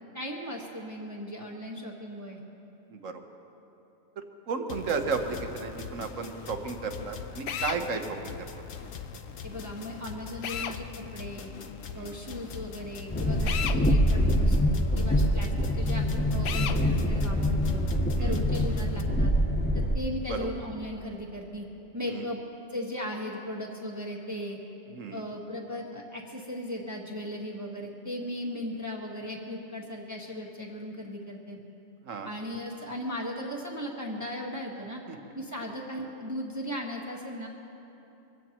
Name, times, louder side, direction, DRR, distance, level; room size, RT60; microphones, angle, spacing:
voice 1, 0.1-2.4 9.4-11.5 11.9-17.8 18.2-19.3 19.7-21.6 21.9-22.4 22.7-24.6 25.1-31.6 32.2-35.0 35.3-37.5, equal, 15° right, -1 dB, 1.4 m, -37 dB
voice 2, 2.9-3.2 4.5-8.5 11.9-12.2 18.2-18.4 20.3-20.5 22.1-22.3 24.9-25.2 32.1-32.3 35.1-35.2, right 4 dB, 75° right, 5 dB, 1.4 m, -33 dB
sound 1, 4.7-19.0, left 6 dB, 80° left, 1.2 m, -42 dB
Drill, 7.5-7.8 10.4-10.8 13.4-13.8 16.4-16.8, left 8 dB, 60° left, 0.8 m, -32 dB
Train, 13.1-20.0, equal, 15° left, 0.4 m, -25 dB
24.0 x 16.0 x 3.0 m, 3.0 s
omnidirectional pair, 1.4 m